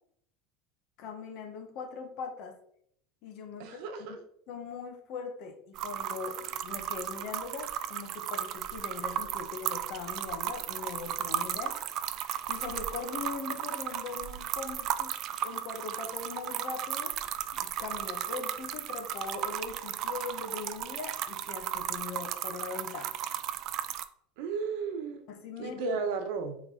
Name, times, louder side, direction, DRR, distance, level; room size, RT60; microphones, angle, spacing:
voice 1, 1.0-2.6 3.2-3.8 4.1-4.2 4.5-12.2 12.5-17.2 17.5-23.2 25.3-26.0, left 5 dB, 45° left, 5 dB, 1.1 m, -41 dB
voice 2, 3.6-4.2 24.4-25.2 25.6-26.5, right 5 dB, 60° right, 6 dB, 1.0 m, -34 dB
sound 1, 5.8-24.0, right 11 dB, 40° right, 0.4 m, -35 dB
8.4 x 3.4 x 3.9 m, 0.70 s
cardioid pair, 165°, 0 cm